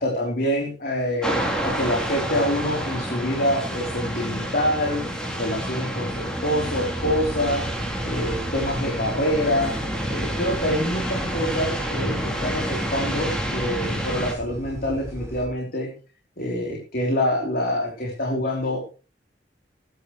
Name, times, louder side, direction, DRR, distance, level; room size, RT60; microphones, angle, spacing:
voice 1, 0.0-5.0 5.4-7.6 8.0-9.8 10.1-15.9 16.4-18.8, equal, 55° left, 0 dB, 3.8 m, -26 dB
sound 1, 1.2-14.3, equal, 5° left, 3.5 m, -29 dB
sound 2, 6.9-15.5, equal, 15° right, 3.4 m, -37 dB
19.0 x 11.0 x 3.2 m, 0.34 s
head